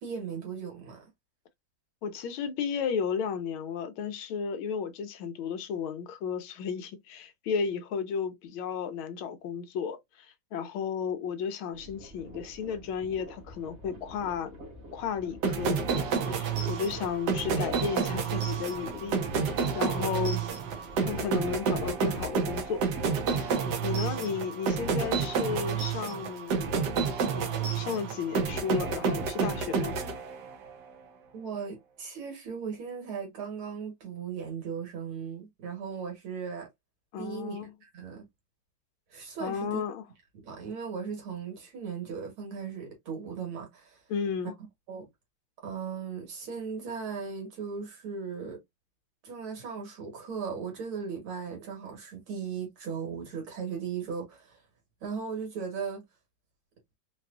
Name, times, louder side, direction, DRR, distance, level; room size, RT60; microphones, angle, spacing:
voice 1, 0.0-1.0 31.3-36.7 37.2-38.3 39.1-39.9 40.4-44.0 44.4-44.5 44.9-45.1 45.6-48.6 49.2-54.6 55.0-56.0, right 6 dB, 85° right, 2.4 m, -37 dB
voice 2, 2.0-14.6 14.9-20.4 21.0-22.8 23.4-23.5 23.8-26.8 27.3-30.0 37.1-37.7 39.4-40.0 44.1-44.5, left 6 dB, 80° left, 1.5 m, -34 dB
sound 1, 11.7-23.1, equal, 40° right, 1.3 m, -48 dB
sound 2, 15.4-30.7, right 5 dB, 60° right, 1.2 m, -30 dB
4.6 x 2.3 x 2.4 m
omnidirectional pair, 2.2 m